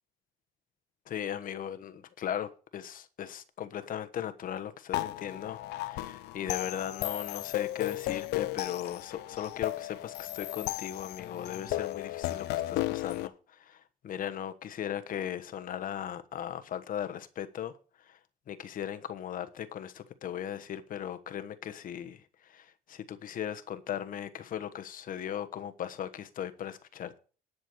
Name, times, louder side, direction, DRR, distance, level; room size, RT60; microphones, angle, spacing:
voice 1, 1.1-17.7 18.0-18.2 18.5-27.2, left 10 dB, 55° left, 1.2 m, -38 dB
sound 1, 4.9-13.3, left 16 dB, 85° left, 0.7 m, -35 dB
11.0 x 6.3 x 6.5 m
cardioid pair, 110°, 17 cm